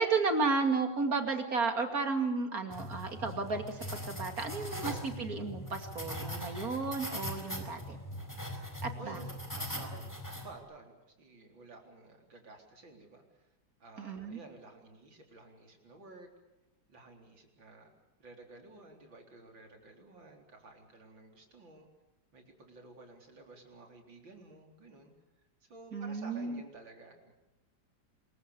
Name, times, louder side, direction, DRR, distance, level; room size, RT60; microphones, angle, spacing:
voice 1, 0.0-8.0 8.8-9.2 14.0-14.4 25.9-26.6, right 4 dB, 45° right, 6 dB, 2.9 m, -33 dB
sound 1, 2.7-10.6, equal, 10° left, 4.3 m, -41 dB
voice 2, 8.9-13.5 13.8-16.3 16.9-17.9 18.2-21.9 22.3-25.1 25.6-27.3, right 3 dB, 75° right, 3 dB, 4.7 m, -53 dB
26.5 x 22.0 x 7.0 m, 0.98 s
omnidirectional pair, 2.1 m